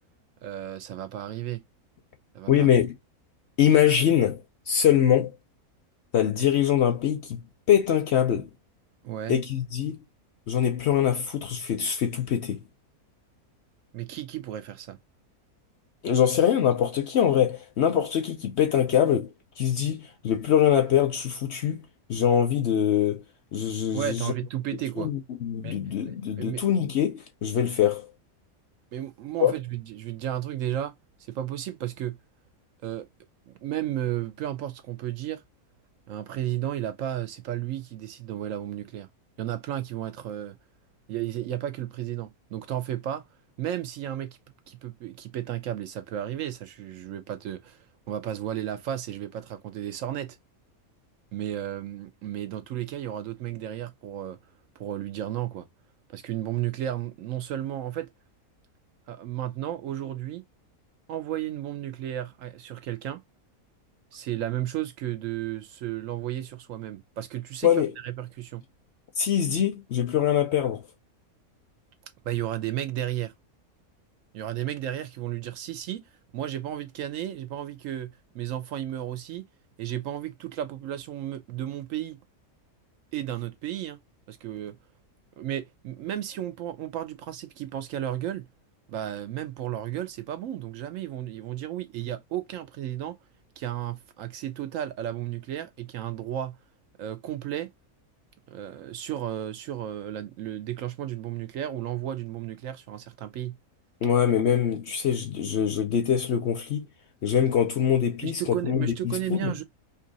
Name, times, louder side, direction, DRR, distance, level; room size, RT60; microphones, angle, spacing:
voice 1, 0.4-1.6 2.3-2.7 9.0-9.4 13.9-15.0 23.9-25.1 25.6-26.7 28.9-30.9 31.3-32.2 32.8-33.1 33.5-35.4 36.1-39.1 39.4-40.6 41.1-43.2 43.6-44.4 44.7-50.4 51.3-54.4 54.8-55.7 56.1-58.1 59.1-60.4 61.1-63.2 64.1-68.6 72.2-73.3 74.3-76.0 76.3-79.4 79.8-82.2 83.1-84.0 84.3-84.8 85.4-88.5 88.9-93.2 93.6-96.6 97.0-97.7 98.5-103.6 108.2-109.6, right 12 dB, 70° right, 0.9 m, -33 dB
voice 2, 2.5-2.9 3.6-4.4 4.7-5.3 6.1-7.4 7.7-8.5 9.3-10.0 10.5-12.6 16.0-21.8 22.1-23.2 23.5-24.3 25.0-28.0 29.4-29.5 67.6-67.9 69.2-70.8 104.0-106.8 107.2-109.5, left 9 dB, 60° left, 0.8 m, -23 dB
2.8 x 2.7 x 3.9 m
omnidirectional pair, 1.5 m